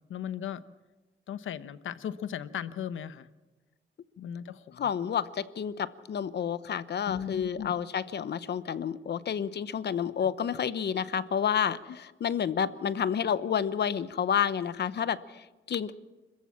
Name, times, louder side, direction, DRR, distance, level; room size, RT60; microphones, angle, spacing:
voice 1, 0.1-0.6 1.3-3.3 4.2-4.9 7.1-7.7 10.2-10.3 11.9-12.0, left 9 dB, 90° left, 14 dB, 1.0 m, -37 dB
voice 2, 4.8-15.9, left 8 dB, 55° left, 15 dB, 0.9 m, -30 dB
26.0 x 15.0 x 7.4 m, 1.2 s
wide cardioid pair, 120°, 20 cm